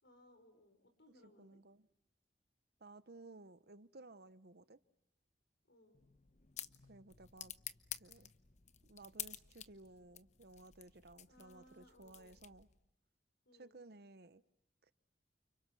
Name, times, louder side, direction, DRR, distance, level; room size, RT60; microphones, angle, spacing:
voice 1, 0.0-1.6 5.7-6.0 11.3-12.4 13.5-13.8, left 1 dB, 80° left, 6 dB, 5.3 m, -65 dB
voice 2, 1.2-1.9 2.8-4.8 6.9-7.5 8.0-8.3 8.8-12.7 13.5-14.4 14.8-14.9, right 2 dB, 65° right, 14 dB, 1.0 m, -57 dB
sound 1, 5.9-12.8, left 11 dB, 40° left, 0.9 m, -51 dB
30.0 x 29.0 x 6.1 m, 0.86 s
head